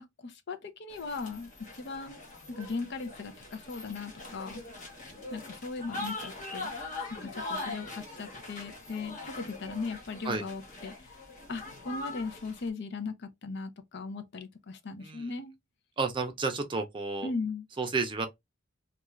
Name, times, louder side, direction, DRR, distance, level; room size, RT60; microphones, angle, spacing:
voice 1, 0.0-2.2 2.6-4.6 5.3-6.7 7.2-10.9 11.5-15.5 17.2-17.6, left 4 dB, 55° left, 0.5 m, -38 dB
sound 1, 0.9-12.7, left 2 dB, 40° left, 0.9 m, -42 dB
voice 2, 16.0-17.3 17.8-18.3, right 4 dB, 25° right, 0.5 m, -31 dB
2.4 x 2.3 x 3.0 m
head